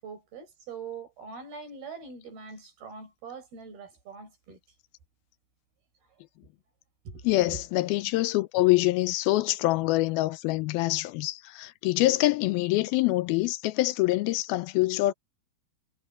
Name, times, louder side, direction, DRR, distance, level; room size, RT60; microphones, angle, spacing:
voice 1, 0.0-4.6 7.1-7.6, right 5 dB, 75° right, 7.6 m, -43 dB
voice 2, 7.2-15.1, left 18 dB, 80° left, 2.4 m, -25 dB
omnidirectional pair, 4.4 m